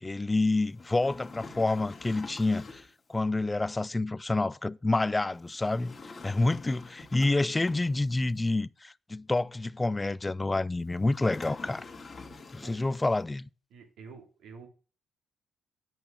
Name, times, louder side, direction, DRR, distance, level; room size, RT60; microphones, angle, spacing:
voice 1, 0.0-5.9 6.2-11.9 12.5-13.5, left 2 dB, 20° left, 0.4 m, -28 dB
sound 1, 0.7-3.0 5.5-8.3 11.0-13.0, left 3 dB, 35° left, 2.3 m, -46 dB
voice 2, 12.6-13.1 13.7-14.7, right 5 dB, 80° right, 3.2 m, -49 dB
9.0 x 5.5 x 6.1 m
cardioid pair, 90°, 0 cm